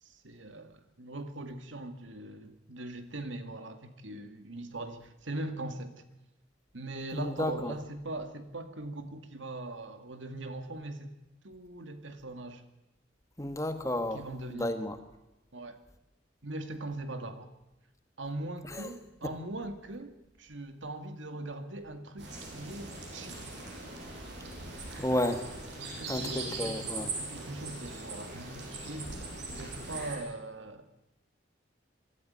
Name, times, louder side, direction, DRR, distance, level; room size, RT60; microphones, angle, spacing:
voice 1, 0.0-6.1 6.7-11.1 11.4-12.6 14.1-14.8 15.5-15.8 16.4-17.5 18.2-23.5 24.9-25.1 25.8-29.1 29.5-31.0, right 2 dB, 85° right, 8 dB, 2.2 m, -41 dB
voice 2, 7.1-7.7 13.4-14.2 14.5-15.0 18.7-18.9 25.0-25.4 26.1-27.1, left 1 dB, 15° left, 7 dB, 1.6 m, -32 dB
sound 1, 22.2-30.2, right 3 dB, 65° right, 7.1 m, -40 dB
24.0 x 13.0 x 9.4 m, 0.96 s
head